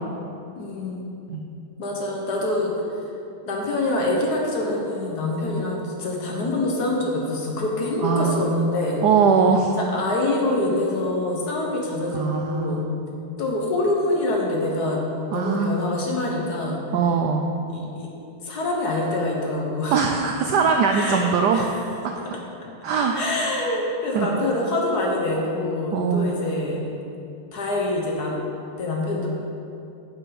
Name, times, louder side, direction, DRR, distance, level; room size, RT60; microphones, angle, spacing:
voice 1, 0.6-1.1 1.8-2.7 3.4-9.0 9.8-12.8 13.4-15.0 15.3-16.8 17.7-18.1 18.4-20.0 20.9-21.7 22.2-22.4 23.1-26.8 27.5-28.4 28.8-29.3, left 2 dB, 55° left, -1 dB, 1.5 m, -25 dB
voice 2, 8.0-8.4 9.0-9.8 12.1-13.1 15.3-15.8 16.9-17.5 19.9-21.6 22.8-23.2 24.1-24.3 25.9-26.3, right 5 dB, 80° right, 3 dB, 0.9 m, -21 dB
10.0 x 7.1 x 4.0 m, 2.7 s
omnidirectional pair, 2.3 m